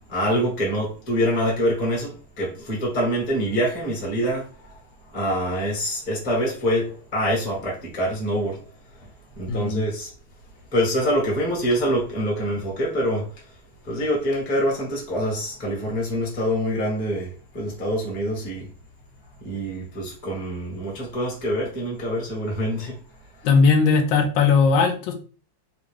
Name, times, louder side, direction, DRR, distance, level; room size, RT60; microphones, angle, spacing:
voice 1, 0.1-4.8 5.1-8.6 9.0-9.1 9.4-10.1 10.7-13.5 13.8-18.7 19.4-23.0 23.3-23.5, equal, 25° left, 1.1 m, -25 dB
voice 2, 9.5-9.8 23.4-25.1, left 5 dB, 80° left, 1.4 m, -18 dB
3.5 x 2.5 x 3.1 m
omnidirectional pair, 2.1 m